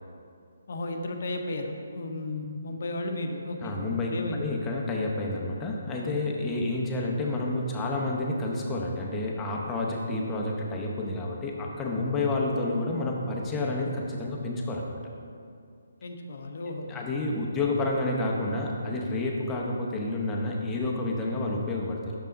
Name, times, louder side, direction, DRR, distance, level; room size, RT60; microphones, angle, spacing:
voice 1, 0.7-4.5 16.0-16.9, left 2 dB, 60° left, 4 dB, 0.7 m, -34 dB
voice 2, 3.6-4.1 4.4-15.0 16.9-22.1, left 2 dB, 15° left, -2 dB, 0.7 m, -29 dB
6.3 x 5.4 x 3.9 m, 2.4 s
hypercardioid pair, 155°, 0 cm